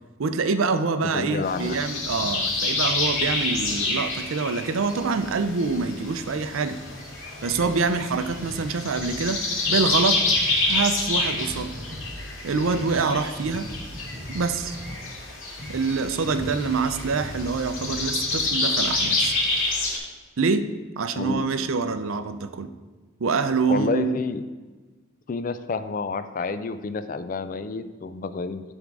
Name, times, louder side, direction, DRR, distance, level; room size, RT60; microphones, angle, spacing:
voice 1, 0.2-6.8 7.4-9.4 9.7-10.2 10.7-11.8 12.4-13.7 14.3-14.7 15.7-19.3 20.4-20.7 21.0-22.7 23.2-24.1, right 4 dB, 75° right, 10 dB, 0.5 m, -25 dB
voice 2, 1.1-1.8 21.1-21.4 23.7-24.5 25.3-28.6, left 4 dB, 40° left, 11 dB, 0.3 m, -29 dB
sound 1, 1.4-20.0, left 2 dB, 75° left, 2.0 m, -28 dB
sound 2, 1.5-19.9, equal, 20° right, 1.6 m, -41 dB
10.5 x 3.6 x 4.7 m, 1.3 s
head